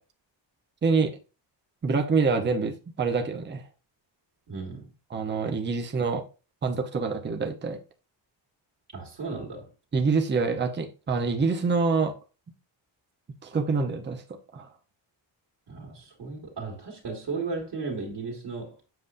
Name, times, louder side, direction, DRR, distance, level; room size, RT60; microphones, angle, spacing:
voice 1, 0.8-1.2 1.8-3.6 5.1-6.2 6.6-7.8 9.9-12.1 13.4-14.2 14.5-14.7, right 4 dB, 25° right, 0.8 m, -26 dB
voice 2, 4.5-4.9 8.9-9.7 15.7-18.8, right 4 dB, 50° right, 2.1 m, -35 dB
7.8 x 6.8 x 2.6 m
wide cardioid pair, 175°, 46 cm